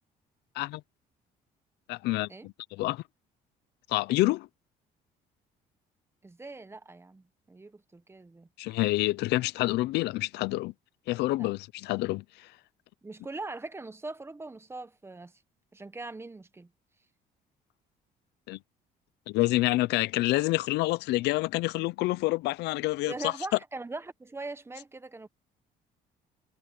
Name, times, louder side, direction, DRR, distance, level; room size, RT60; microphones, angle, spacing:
voice 1, 1.9-3.0 3.9-4.5 8.6-10.7 11.1-12.5 18.5-18.6 19.3-23.3, left 19 dB, 85° left, 0.6 m, -28 dB
voice 2, 6.2-8.5 11.4-11.5 13.0-15.3 15.7-16.7 23.1-25.3, right 3 dB, 15° right, 1.2 m, -41 dB
cardioid pair, 110°, 17 cm